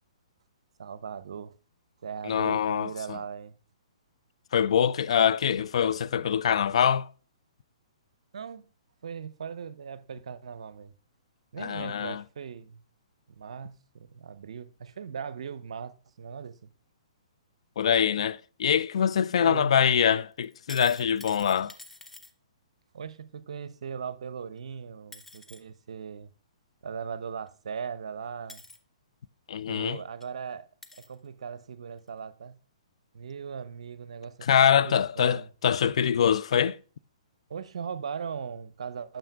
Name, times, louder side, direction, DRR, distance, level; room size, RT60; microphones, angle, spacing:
voice 1, 0.8-1.5 2.0-3.6 8.3-8.7 9.0-10.9 11.5-12.8 13.3-16.6 19.4-19.7 22.9-26.3 26.8-28.6 29.7-30.7 31.1-32.6 33.1-35.5 37.5-39.2, right 6 dB, 65° right, 0.6 m, -39 dB
voice 2, 2.2-3.2 4.5-7.1 11.6-12.2 17.8-21.7 29.5-30.0 34.5-36.8, left 8 dB, 65° left, 0.3 m, -24 dB
sound 1, 20.4-22.3 24.6-24.7 25.1-25.6 27.5-27.6 28.5-28.8 29.7-29.8 30.2-30.3 30.8-31.2 32.0-32.1, left 2 dB, 10° left, 0.6 m, -48 dB
8.9 x 7.0 x 2.2 m
hypercardioid pair, 125°, 3 cm